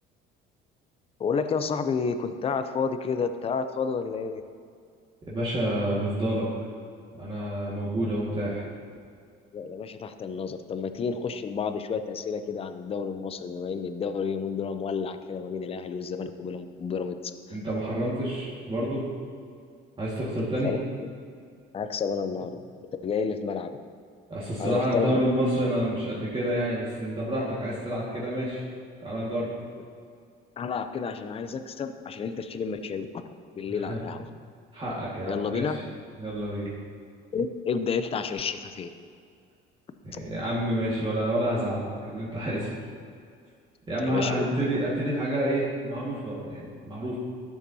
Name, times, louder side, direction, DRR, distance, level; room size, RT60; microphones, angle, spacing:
voice 1, 1.2-4.4 9.5-17.6 20.6-21.1 21.7-22.6 23.0-23.8 24.6-25.2 30.6-33.2 33.6-34.3 35.3-35.8 37.3-38.9 44.0-44.5, left 5 dB, 25° left, 9 dB, 0.5 m, -30 dB
voice 2, 5.3-6.5 7.2-8.6 17.5-19.1 20.0-20.7 24.3-28.6 29.0-29.5 33.8-34.0 34.7-35.6 36.2-36.7 40.0-42.7 43.9-47.2, right 1 dB, 25° right, -7 dB, 1.8 m, -28 dB
12.5 x 7.1 x 2.8 m, 2.3 s
cardioid pair, 105°, 21 cm